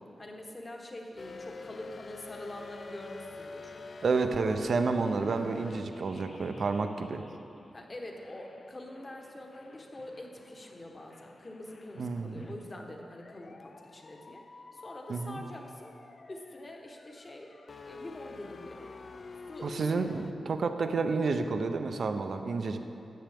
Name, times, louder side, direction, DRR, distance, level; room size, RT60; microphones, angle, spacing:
voice 1, 0.2-3.7 7.7-14.4 14.7-15.9 16.3-17.5 17.8-18.9 19.5-19.7, left 1 dB, 25° left, 1 dB, 1.1 m, -45 dB
sound 1, 1.2-7.7 8.2-20.3, left 4 dB, 45° left, 0.4 m, -48 dB
voice 2, 4.0-7.2 12.0-12.5 15.1-15.4 19.6-22.8, right 4 dB, 60° right, 7 dB, 0.6 m, -30 dB
13.5 x 9.0 x 3.5 m, 2.9 s
wide cardioid pair, 135°, 0 cm